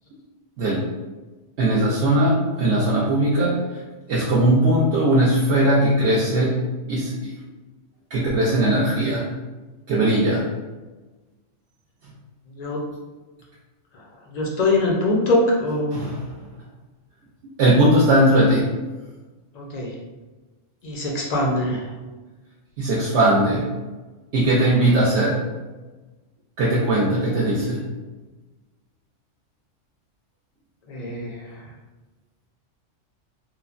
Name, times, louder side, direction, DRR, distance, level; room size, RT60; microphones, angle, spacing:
voice 1, 0.6-0.9 1.6-3.8 4.1-6.6 6.9-7.3 8.1-9.3 9.9-10.4 12.7-12.8 15.9-16.4 17.6-18.7 22.8-23.7 24.3-25.4 26.6-27.8, right 1 dB, 70° right, -5 dB, 0.8 m, -19 dB
voice 2, 12.5-12.8 14.3-15.9 19.5-19.9 20.8-21.9 30.9-31.4, left 2 dB, 50° left, -2 dB, 0.5 m, -23 dB
3.1 x 2.1 x 2.4 m, 1.2 s
omnidirectional pair, 1.3 m